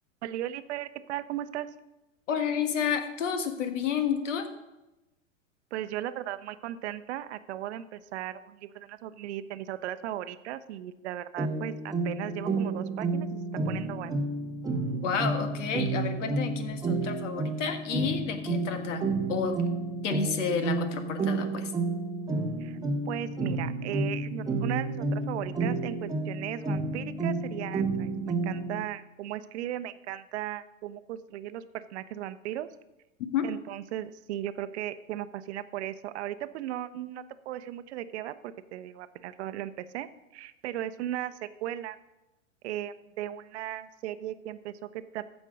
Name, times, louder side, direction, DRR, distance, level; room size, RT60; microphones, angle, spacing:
voice 1, 0.2-1.7 5.7-14.2 22.6-22.8 23.1-32.7 33.4-42.0 42.6-45.2, right 12 dB, 55° right, 13 dB, 0.7 m, -37 dB
voice 2, 2.3-4.5 14.9-19.5 20.0-21.7 33.3-33.5, left 7 dB, 65° left, 7 dB, 1.6 m, -30 dB
sound 1, 11.4-28.8, right 3 dB, 10° right, 1.0 m, -31 dB
15.0 x 5.3 x 5.1 m, 1.0 s
hypercardioid pair, 105°, 39 cm